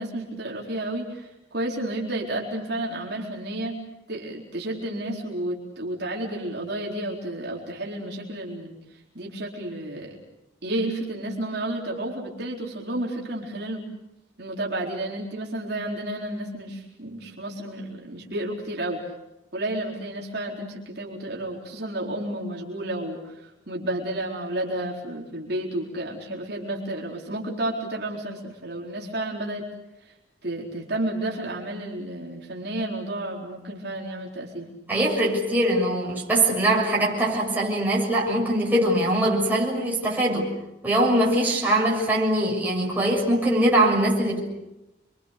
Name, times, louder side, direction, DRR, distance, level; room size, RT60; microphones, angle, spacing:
voice 1, 0.0-3.8 4.1-8.8 9.1-10.2 10.6-13.8 14.4-19.0 19.5-29.7 30.4-34.7, right 1 dB, 55° right, -2 dB, 4.2 m, -31 dB
voice 2, 34.9-40.5 40.8-44.5, right 1 dB, 10° right, -4 dB, 6.7 m, -22 dB
29.5 x 24.5 x 6.7 m, 0.96 s
head